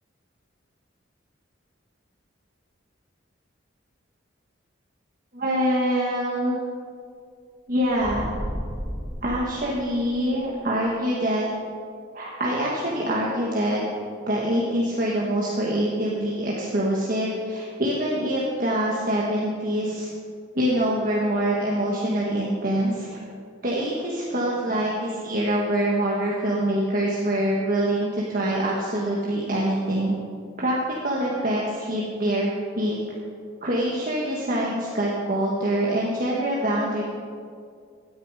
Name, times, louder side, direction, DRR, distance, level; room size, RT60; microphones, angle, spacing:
voice 1, 5.3-6.6 7.7-8.3 9.2-11.5 12.1-13.8 14.3-20.1 20.6-23.1 23.6-30.1 30.6-32.5 32.7-33.0 33.6-37.0, right 1 dB, 45° right, -5 dB, 1.6 m, -25 dB
sound 1, 7.9-10.3, equal, 10° right, 1.7 m, -33 dB
16.5 x 9.9 x 5.0 m, 2.2 s
head